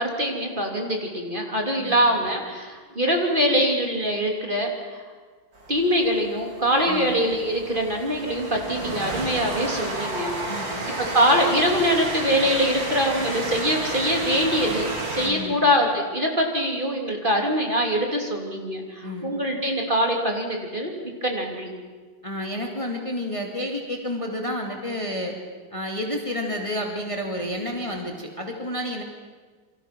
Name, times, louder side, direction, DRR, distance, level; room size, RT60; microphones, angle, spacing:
voice 1, 0.0-5.0 5.7-10.4 11.0-20.9 21.2-21.7, equal, 25° right, 1 dB, 3.3 m, -23 dB
Train, 5.5-15.3, right 2 dB, 80° right, 4.5 m, -32 dB
voice 2, 10.5-10.9 15.2-15.6 19.0-19.4 22.2-25.3 25.7-29.0, left 1 dB, 15° left, 1 dB, 2.6 m, -30 dB
28.5 x 25.0 x 6.1 m, 1.4 s
omnidirectional pair, 2.0 m